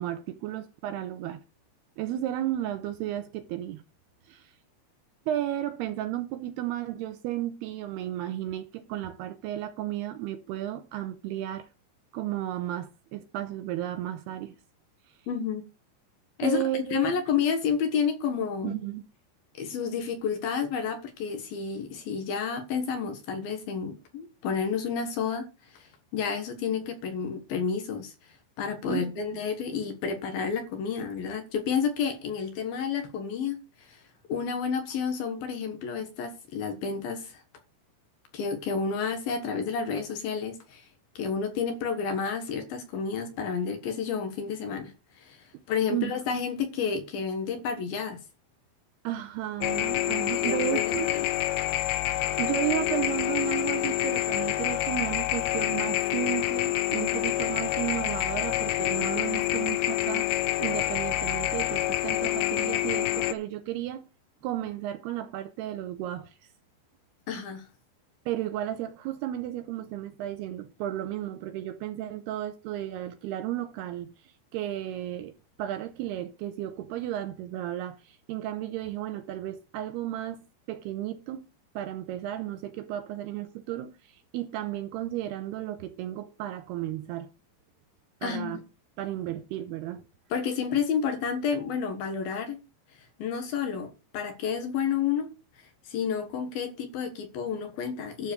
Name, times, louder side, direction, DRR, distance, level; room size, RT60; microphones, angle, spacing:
voice 1, 0.0-1.4 2.0-3.8 4.3-4.5 5.3-11.7 12.1-14.5 16.4-17.1 18.6-19.0 28.9-29.4 45.5-45.6 45.9-46.1 49.0-51.1 52.4-60.3 60.6-64.0 64.4-66.4 68.3-75.3 75.6-81.4 81.8-87.3 88.2-88.6 89.0-90.0, right 13 dB, 80° right, 2.4 m, -33 dB
voice 2, 15.3-15.6 16.4-18.8 19.6-28.1 28.6-34.0 34.3-37.4 38.3-40.8 41.2-44.9 45.2-48.2 50.3-51.3 67.3-67.7 88.2-88.5 90.3-92.6 93.2-95.3 95.9-98.3, left 6 dB, 65° left, 2.8 m, -30 dB
sound 1, 49.6-63.3, left 14 dB, 80° left, 3.0 m, -27 dB
12.0 x 4.8 x 6.8 m
omnidirectional pair, 5.1 m